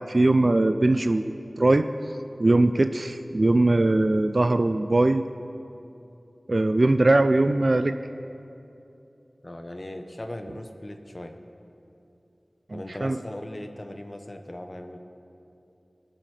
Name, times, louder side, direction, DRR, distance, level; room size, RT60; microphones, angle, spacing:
voice 1, 0.1-1.9 2.4-5.2 6.5-8.0 12.7-13.2, right 2 dB, 55° right, 9 dB, 0.3 m, -21 dB
voice 2, 9.4-11.3 12.7-15.0, left 1 dB, 35° left, 5 dB, 0.8 m, -38 dB
22.5 x 7.6 x 3.3 m, 2.8 s
wide cardioid pair, 45°, 0 cm